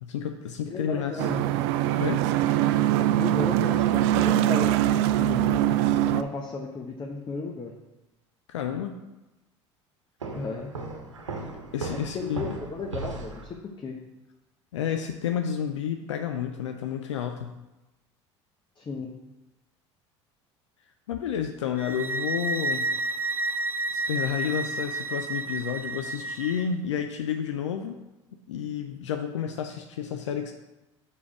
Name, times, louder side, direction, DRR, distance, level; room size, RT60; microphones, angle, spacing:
voice 1, 0.0-1.4 2.0-2.3 8.5-9.0 11.4-12.6 14.7-17.6 21.1-22.9 23.9-28.1 28.5-30.5, left 8 dB, 80° left, 6 dB, 0.5 m, -31 dB
voice 2, 0.6-1.4 3.1-5.7 6.1-7.7 10.3-10.7 11.9-14.0 18.8-19.1, left 3 dB, 30° left, 2 dB, 1.0 m, -34 dB
sound 1, 1.2-6.2, right 13 dB, 65° right, 0.4 m, -23 dB
Walk footsteps, 10.2-13.5, right 3 dB, 90° right, 1.0 m, -37 dB
sound 2, 21.8-26.7, right 2 dB, 15° right, 0.6 m, -30 dB
7.0 x 5.0 x 4.8 m, 1.0 s
hypercardioid pair, 70°, 15 cm